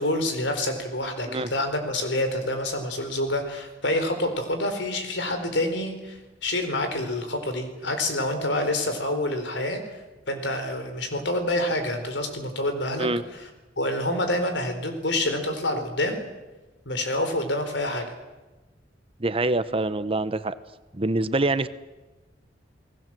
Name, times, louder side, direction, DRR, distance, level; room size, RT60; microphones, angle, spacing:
voice 1, 0.0-9.8 10.3-13.1 13.8-16.2 16.9-18.0, left 1 dB, 75° left, 7 dB, 4.4 m, -27 dB
voice 2, 19.2-20.5 20.9-21.7, right 2 dB, 30° right, 13 dB, 0.9 m, -25 dB
29.0 x 19.0 x 7.7 m, 1.1 s
head